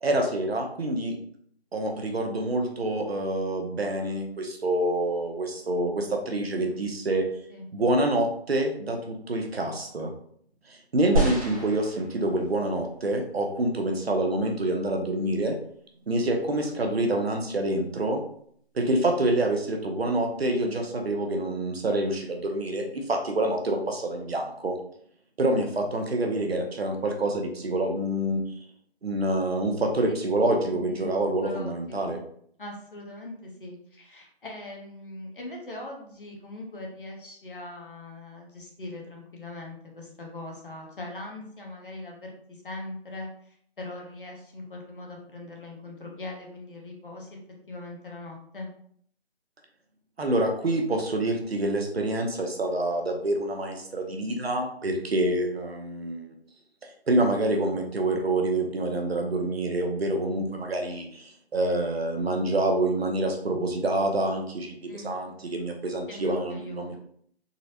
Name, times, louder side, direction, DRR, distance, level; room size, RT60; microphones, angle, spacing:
voice 1, 0.0-1.2 1.7-7.3 7.7-10.1 10.7-15.6 16.1-18.2 18.7-24.8 25.4-28.4 29.0-32.2 50.2-56.3 56.8-67.0, right 1 dB, 65° right, 3 dB, 0.8 m, -27 dB
sound 1, 11.2-12.7 13.4-13.5, right 1 dB, 30° right, 0.8 m, -29 dB
voice 2, 30.7-31.1 31.4-32.1 32.6-47.4 47.7-48.7 64.9-65.2 66.1-67.0, left 2 dB, 50° left, 0 dB, 0.9 m, -41 dB
3.8 x 2.1 x 2.8 m, 0.64 s
figure-of-eight pair, 170°, 33 cm